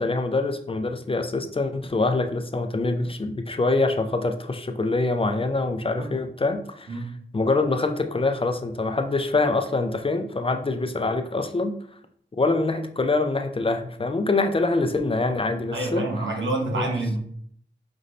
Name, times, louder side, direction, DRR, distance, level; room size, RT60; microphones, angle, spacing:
voice 1, 0.0-7.0 7.3-11.7 12.4-16.0 16.8-16.9, left 3 dB, 30° left, 6 dB, 0.4 m, -25 dB
voice 2, 15.7-17.2, right 2 dB, 85° right, 0 dB, 1.0 m, -27 dB
5.2 x 2.6 x 3.1 m, 0.62 s
wide cardioid pair, 85°, 19 cm